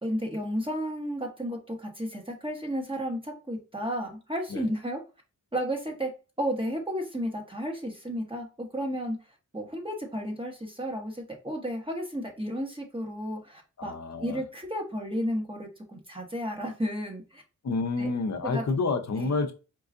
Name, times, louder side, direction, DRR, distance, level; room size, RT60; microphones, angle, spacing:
voice 1, 0.0-5.0 5.5-6.1 6.4-9.2 9.5-13.9 14.2-17.4 18.0-18.1 18.5-18.6 19.2-19.4, equal, 15° right, 1.1 m, -33 dB
voice 2, 13.8-14.4 17.6-19.5, left 3 dB, 55° left, 0.7 m, -29 dB
4.6 x 2.3 x 2.5 m
cardioid pair, 60°, 32 cm